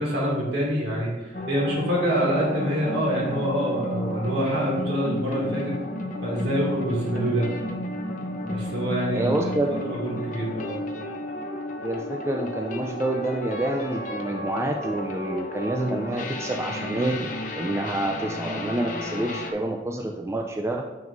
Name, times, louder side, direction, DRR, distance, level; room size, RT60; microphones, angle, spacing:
voice 1, 0.0-5.7 6.2-7.5 8.4-9.5 9.9-10.8, equal, 65° right, -4 dB, 2.1 m, -26 dB
sound 1, 1.3-19.5, left 1 dB, 45° left, 0.6 m, -33 dB
voice 2, 9.1-9.7 11.8-17.3 17.6-20.8, right 1 dB, 15° right, 2 dB, 0.3 m, -28 dB
7.1 x 6.2 x 2.5 m, 1.2 s
head